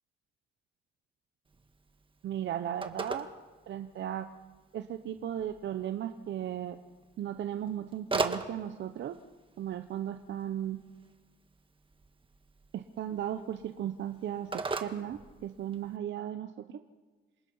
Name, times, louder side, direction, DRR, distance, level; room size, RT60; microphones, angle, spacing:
Telephone, 1.5-16.0, right 3 dB, 25° right, 1.6 m, -41 dB
voice 1, 2.2-3.3 3.7-4.3 4.7-6.8 7.2-9.2 9.6-10.8 12.7-16.8, right 10 dB, 65° right, 8 dB, 0.9 m, -36 dB
27.5 x 18.5 x 5.5 m, 1.4 s
cardioid pair, 90°, 20 cm